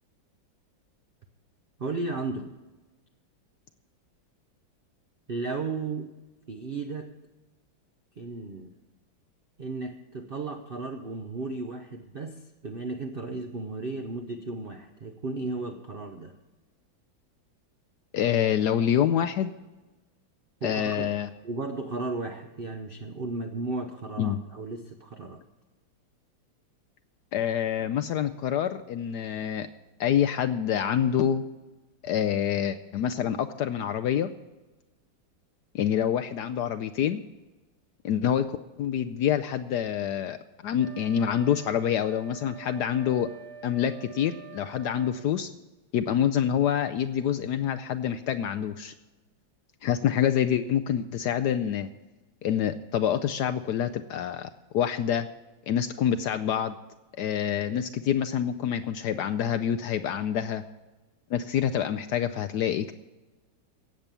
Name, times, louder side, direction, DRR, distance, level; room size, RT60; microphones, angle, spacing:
voice 1, 1.8-2.5 5.3-6.1 6.5-7.1 8.2-8.7 9.6-16.4 20.6-21.1 21.4-25.4, right 3 dB, 70° right, 4 dB, 0.5 m, -34 dB
voice 2, 18.1-19.5 20.6-21.3 24.2-24.4 27.3-29.7 30.0-31.4 32.0-34.3 35.7-37.2 38.0-38.4 38.8-40.4 40.6-43.3 43.6-45.5 45.9-48.9 49.8-51.9 52.4-55.3 55.7-56.8 57.2-60.6 61.3-62.9, left 9 dB, 75° left, 9 dB, 0.9 m, -26 dB
Wind instrument woodwind instrument, 40.8-45.2, right 8 dB, 35° right, 1.7 m, -46 dB
17.0 x 7.5 x 6.8 m, 1.2 s
omnidirectional pair, 2.2 m